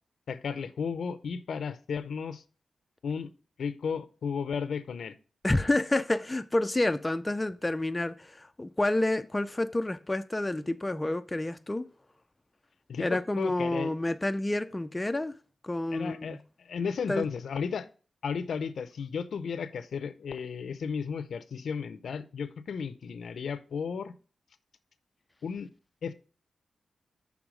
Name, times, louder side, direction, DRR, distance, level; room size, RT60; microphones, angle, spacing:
voice 1, 0.3-2.4 3.0-3.3 3.6-5.2 12.9-13.9 15.9-17.9 18.2-24.1 25.4-25.7 26.0-26.1, left 6 dB, 80° left, 0.5 m, -34 dB
voice 2, 5.4-11.9 13.0-15.3 15.6-16.4 17.1-17.2, left 2 dB, 15° left, 0.3 m, -29 dB
6.2 x 3.5 x 5.0 m
wide cardioid pair, 110°, 0 cm